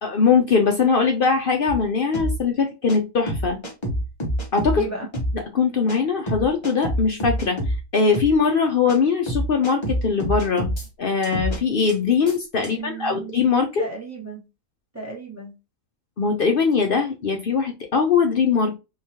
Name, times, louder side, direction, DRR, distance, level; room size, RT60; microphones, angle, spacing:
voice 1, 0.0-3.6 4.5-4.8 5.3-10.7 11.0-13.8 16.2-18.8, left 5 dB, 55° left, 0.6 m, -21 dB
sound 1, 1.7-1.8 2.1-2.3 2.9-3.0 3.3-4.8 5.1-5.3 5.9-6.0 6.3-7.8 8.1-8.3 8.9-9.0 9.3-10.9 11.2-11.6 11.9-12.0 12.3-12.4 12.6-12.7, equal, 25° left, 0.8 m, -26 dB
voice 2, 4.7-5.1 12.6-13.3 13.8-14.4 14.9-15.5, right 4 dB, 15° right, 1.0 m, -34 dB
3.7 x 3.1 x 2.7 m
omnidirectional pair, 1.4 m